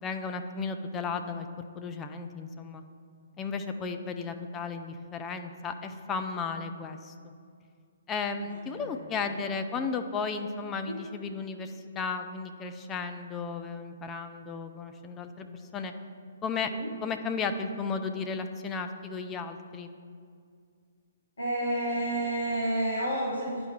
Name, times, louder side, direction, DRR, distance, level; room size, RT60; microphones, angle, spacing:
voice 1, 0.0-1.5 1.8-2.8 3.4-7.1 8.1-15.5 15.7-15.9 16.4-16.7 17.0-19.9, left 5 dB, 15° left, 7 dB, 0.4 m, -34 dB
voice 2, 21.4-23.6, right 1 dB, 65° left, -7 dB, 1.7 m, -30 dB
11.0 x 4.5 x 3.2 m, 2.2 s
figure-of-eight pair, 125°, 0 cm